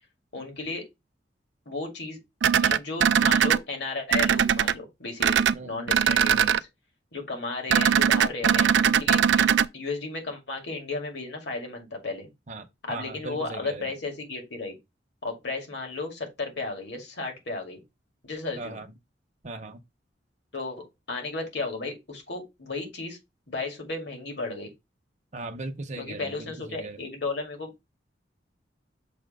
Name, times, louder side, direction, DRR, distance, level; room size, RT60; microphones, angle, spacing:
voice 1, 0.3-0.8 1.7-2.2 2.6-6.7 7.1-9.5 9.7-12.3 12.9-14.8 15.2-17.8 18.2-18.8 20.5-23.2 23.5-24.7 26.0-27.9, left 3 dB, 75° left, 2.2 m, -34 dB
sound 1, 2.4-3.6 4.1-4.7 5.2-5.5 5.9-6.6 7.7-9.7, right 8 dB, 80° right, 0.4 m, -20 dB
voice 2, 5.5-6.4 12.5-13.9 18.6-18.9 19.4-19.8 25.3-27.0, right 2 dB, 40° right, 0.7 m, -39 dB
6.5 x 2.8 x 5.3 m
head